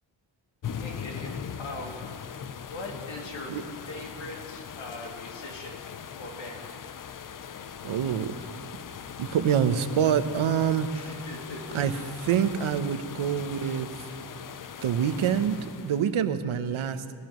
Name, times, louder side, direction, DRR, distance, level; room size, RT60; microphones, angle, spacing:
sound 1, 0.6-16.1, left 7 dB, 45° left, 0.6 m, -40 dB
voice 1, 0.7-1.9 2.7-5.7 6.2-6.7 10.9-11.8, left 2 dB, 70° left, 0 dB, 2.6 m, -40 dB
voice 2, 7.8-8.3 9.2-10.9 11.7-11.9 12.2-13.9 14.8-17.0, right 8 dB, 85° right, 10 dB, 0.9 m, -26 dB
20.5 x 17.0 x 3.1 m, 2.6 s
wide cardioid pair, 105°, 48 cm